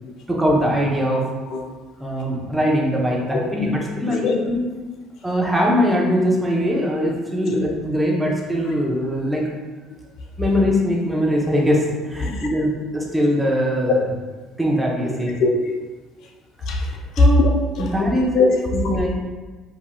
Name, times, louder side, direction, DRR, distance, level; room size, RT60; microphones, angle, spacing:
voice 1, 0.3-1.2 2.0-4.6 5.2-9.5 10.4-14.0 14.6-15.3 17.2-17.5 17.8-18.4 18.7-19.1, equal, 10° right, -3 dB, 1.0 m, -21 dB
voice 2, 15.4-15.8 16.7-17.5 17.8-18.0 18.3-18.8, left 2 dB, 60° left, 2 dB, 0.4 m, -20 dB
5.1 x 2.7 x 2.3 m, 1.3 s
hypercardioid pair, 60°, 0 cm